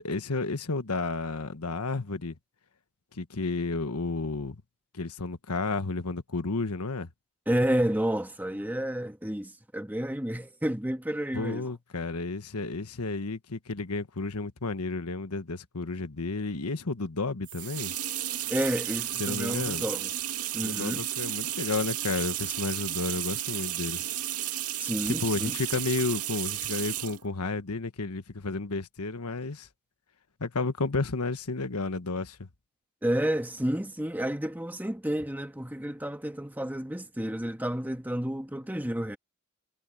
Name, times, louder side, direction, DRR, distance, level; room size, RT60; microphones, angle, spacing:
voice 1, 0.0-2.3 3.1-4.6 4.9-7.1 11.3-17.9 19.2-19.8 20.6-24.0 25.0-29.7 30.4-32.5, left 3 dB, 90° left, 1.3 m, -32 dB
voice 2, 7.5-11.7 18.5-20.1 20.5-21.1 24.8-25.6 33.0-39.2, right 1 dB, 10° right, 1.5 m, -30 dB
sound 1, 17.4-27.2, right 13 dB, 85° right, 2.4 m, -33 dB
head